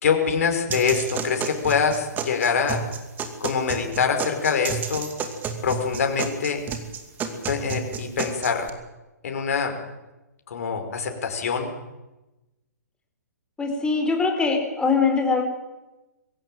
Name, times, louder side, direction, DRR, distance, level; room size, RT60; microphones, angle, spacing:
voice 1, 0.0-2.8 3.4-5.1 5.6-6.6 7.5-8.7 9.2-9.7 10.5-11.7, left 6 dB, 55° left, 5 dB, 4.9 m, -24 dB
sound 1, 0.7-8.7, right 6 dB, 20° right, 2.5 m, -32 dB
voice 2, 13.6-15.4, left 4 dB, 10° left, 3 dB, 4.6 m, -22 dB
22.5 x 16.0 x 9.1 m, 1.0 s
figure-of-eight pair, 125°, 9 cm